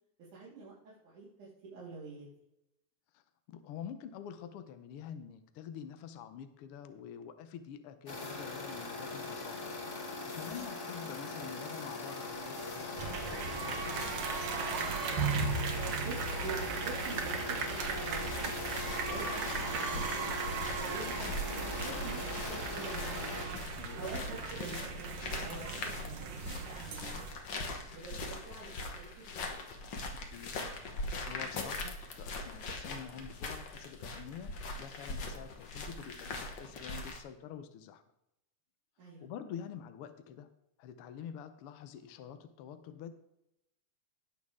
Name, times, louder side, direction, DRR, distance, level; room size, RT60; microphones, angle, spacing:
voice 1, 0.3-0.8 1.0-2.3 10.5-10.8 15.5-15.6 16.0-18.5 19.1-20.2 20.8-23.3 24.0-27.1 27.9-29.5 39.0-39.2, right 4 dB, 90° right, -8 dB, 4.1 m, -46 dB
voice 2, 3.5-9.7 10.0-14.2 23.8-24.1 30.1-38.0 39.0-40.5 40.8-43.1, left 8 dB, 80° left, 9 dB, 1.3 m, -47 dB
sound 1, 8.1-23.5, left 3 dB, 30° left, 1.3 m, -41 dB
sound 2, 13.0-27.3, right 5 dB, 60° right, 1.9 m, -37 dB
sound 3, 17.8-37.2, left 2 dB, 50° left, 1.5 m, -42 dB
17.5 x 6.3 x 3.7 m, 0.84 s
omnidirectional pair, 3.5 m